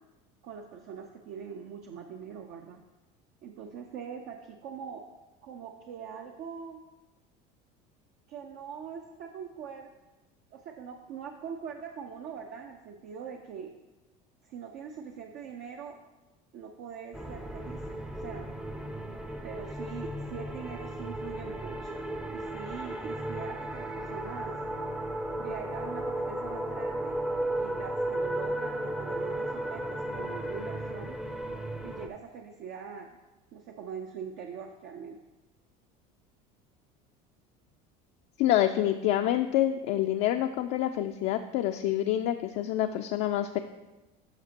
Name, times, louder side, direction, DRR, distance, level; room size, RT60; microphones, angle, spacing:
voice 1, 0.4-2.8 3.4-5.1 5.4-6.8 8.3-9.9 10.5-13.7 14.4-16.0 16.5-17.9 18.2-18.5 19.4-21.9 22.3-24.6 25.4-27.2 27.6-31.2 31.8-33.2 33.5-35.2, right 7 dB, 65° right, 3 dB, 0.7 m, -42 dB
sound 1, 17.1-32.1, right 1 dB, 5° right, 0.5 m, -35 dB
voice 2, 38.4-43.6, left 12 dB, 60° left, 5 dB, 0.4 m, -27 dB
12.5 x 5.1 x 2.9 m, 1.1 s
supercardioid pair, 105°, 20 cm